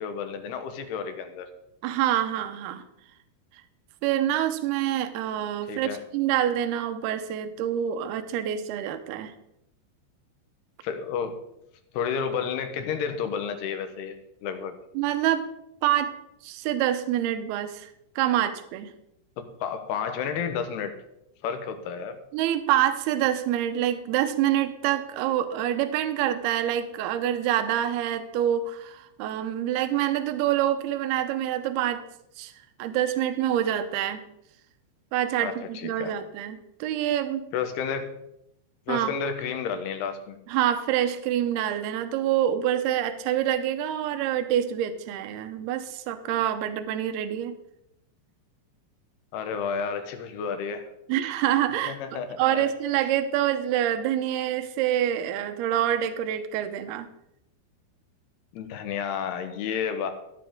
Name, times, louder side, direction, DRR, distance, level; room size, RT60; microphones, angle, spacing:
voice 1, 0.0-1.5 5.7-6.0 10.8-11.4 11.9-14.1 14.4-14.8 19.4-20.9 21.4-22.2 35.4-36.1 37.5-38.1 38.9-40.4 49.3-50.9 51.9-52.7 58.5-60.1, left 6 dB, 70° left, 7 dB, 3.0 m, -31 dB
voice 2, 1.8-2.8 4.0-9.3 15.0-15.5 15.8-16.1 16.4-17.9 18.2-18.9 22.3-32.0 32.4-32.5 32.8-34.2 35.1-37.5 38.9-39.1 40.5-47.5 51.1-52.0 52.4-57.1, right 11 dB, 75° right, 8 dB, 2.6 m, -26 dB
14.5 x 10.5 x 3.7 m, 0.80 s
omnidirectional pair, 5.2 m